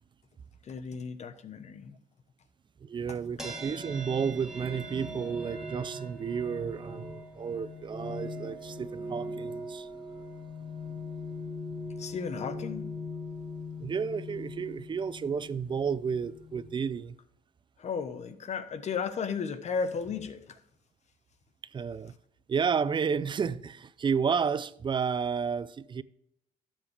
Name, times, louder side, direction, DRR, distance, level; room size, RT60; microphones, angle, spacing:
voice 1, 0.6-2.0 3.1-3.5 12.0-12.9 17.8-20.6, left 6 dB, 40° left, 1.1 m, -35 dB
voice 2, 2.8-9.9 13.8-17.2 21.7-22.1 22.5-26.0, right 6 dB, 30° right, 0.5 m, -31 dB
sound 1, 3.4-16.9, left 1 dB, 5° right, 2.3 m, -41 dB
12.5 x 7.4 x 3.4 m
cardioid pair, 110°, 17 cm